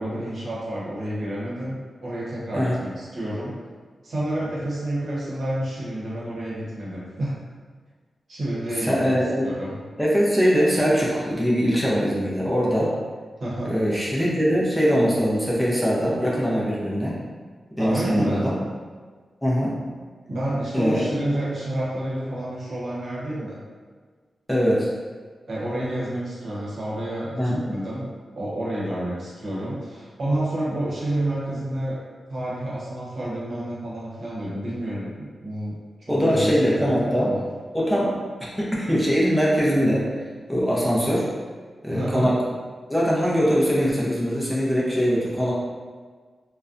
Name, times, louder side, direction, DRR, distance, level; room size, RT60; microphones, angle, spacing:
voice 1, 0.0-3.6 4.0-7.4 8.3-9.1 9.4-9.8 13.4-13.7 17.8-18.5 20.3-23.6 25.5-32.0 32.3-35.7 36.2-37.4 41.9-42.3, right 1 dB, 70° right, -7 dB, 0.8 m, -29 dB
voice 2, 8.8-9.5 10.0-12.9 13.6-17.2 17.8-18.6 19.4-19.8 20.7-21.1 24.5-24.9 27.4-27.6 36.1-37.3 37.7-38.1 38.6-40.1 40.5-41.3 41.8-42.4 42.9-45.5, equal, 5° left, -6 dB, 0.5 m, -22 dB
2.5 x 2.1 x 2.4 m, 1.5 s
wide cardioid pair, 90°, 0 cm